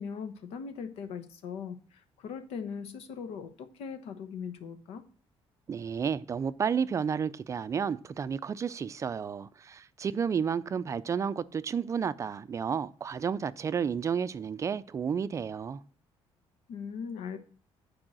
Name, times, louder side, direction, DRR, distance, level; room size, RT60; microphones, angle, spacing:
voice 1, 0.0-5.0 16.7-17.4, left 6 dB, 90° left, 1.0 m, -40 dB
voice 2, 5.7-15.8, right 7 dB, 30° right, 0.4 m, -31 dB
8.8 x 4.7 x 7.5 m
cardioid pair, 140°, 10 cm